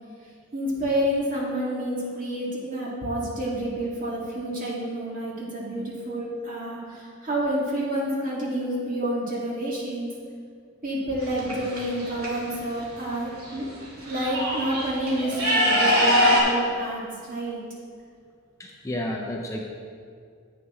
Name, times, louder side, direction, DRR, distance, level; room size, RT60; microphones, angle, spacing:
voice 1, 0.5-10.1 10.8-13.7 14.1-17.6, right 1 dB, 40° right, -5 dB, 2.2 m, -29 dB
sound 1, 11.2-12.3 13.4-13.5 13.8-16.4, equal, 75° right, 2.5 m, -23 dB
voice 2, 18.6-19.6, left 1 dB, 15° left, -1 dB, 0.5 m, -31 dB
10.5 x 8.4 x 3.1 m, 2.2 s
head